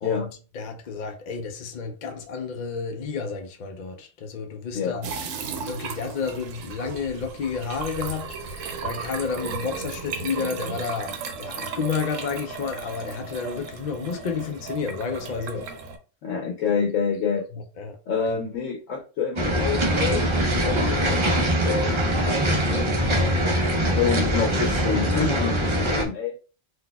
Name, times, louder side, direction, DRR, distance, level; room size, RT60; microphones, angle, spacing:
voice 1, 0.5-5.1 5.7-15.7 17.5-18.0 18.2-18.4 22.5-22.9, left 5 dB, 55° left, 0.5 m, -31 dB
sound 1, 5.0-16.0, right 5 dB, 90° right, 1.0 m, -35 dB
voice 2, 16.2-17.4 18.1-21.9 23.8-26.4, left 6 dB, 85° left, 1.0 m, -27 dB
sound 2, 19.4-26.0, equal, 40° right, 0.4 m, -22 dB
3.9 x 2.7 x 2.2 m
omnidirectional pair, 1.3 m